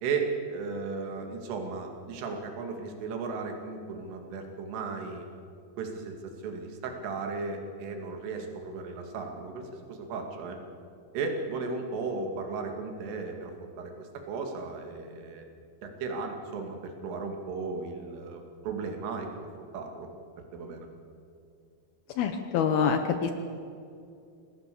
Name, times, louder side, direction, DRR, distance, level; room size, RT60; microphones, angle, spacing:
voice 1, 0.0-5.3 5.8-10.6 11.1-15.5 15.8-20.1 20.5-20.9, right 4 dB, 80° right, 3 dB, 4.9 m, -35 dB
voice 2, 22.2-23.3, left 7 dB, 75° left, 7 dB, 2.3 m, -26 dB
26.0 x 18.5 x 6.9 m, 2.5 s
omnidirectional pair, 5.7 m